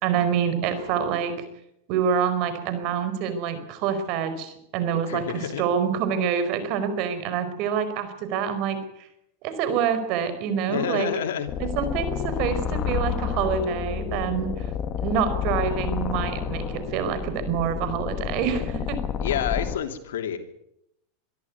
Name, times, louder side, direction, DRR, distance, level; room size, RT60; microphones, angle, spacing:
voice 1, 0.0-1.4 1.9-8.8 9.4-11.1 11.6-14.7 15.0-19.0, right 7 dB, 50° right, 11 dB, 4.7 m, -26 dB
voice 2, 0.6-1.0 5.1-5.6 10.7-11.5 18.8-18.9 19.2-20.4, left 9 dB, 85° left, 6 dB, 3.0 m, -29 dB
sound 1, 11.5-19.8, left 8 dB, 35° left, 1.8 m, -30 dB
24.0 x 13.5 x 9.6 m, 0.79 s
supercardioid pair, 135°, 0 cm